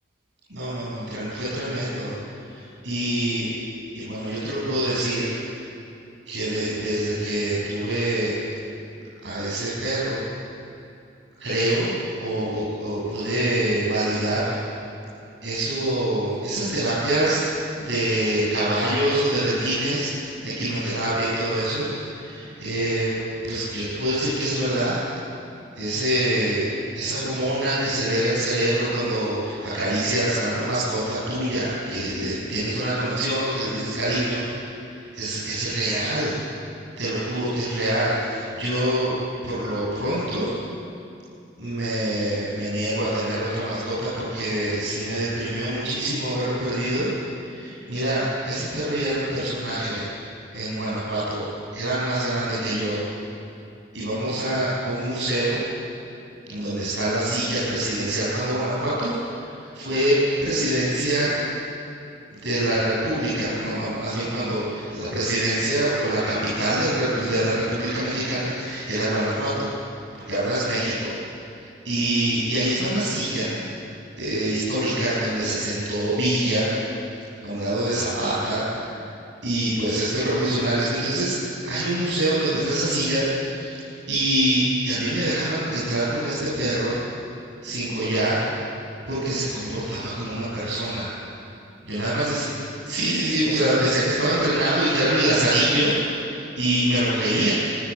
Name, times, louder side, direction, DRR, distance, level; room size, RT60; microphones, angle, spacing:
voice 1, 0.5-2.1 2.5-3.5 3.9-5.3 6.3-8.4 9.2-10.2 11.4-11.9 12.2-14.5 15.4-17.4 17.8-20.1 20.4-23.1 23.4-25.0 25.7-34.6 35.0-36.4 37.0-39.2 39.4-40.5 41.6-47.1 47.4-50.1 50.5-53.0 53.9-55.6 56.5-61.3 62.3-69.7 70.1-71.1 71.8-73.5 74.2-76.7 77.4-78.9 79.4-81.4 81.6-86.9 87.6-88.4 89.1-91.1 91.9-92.5 92.8-97.5, right 1 dB, 70° right, -8 dB, 7.7 m, -25 dB
27.5 x 17.5 x 9.7 m, 2.7 s
head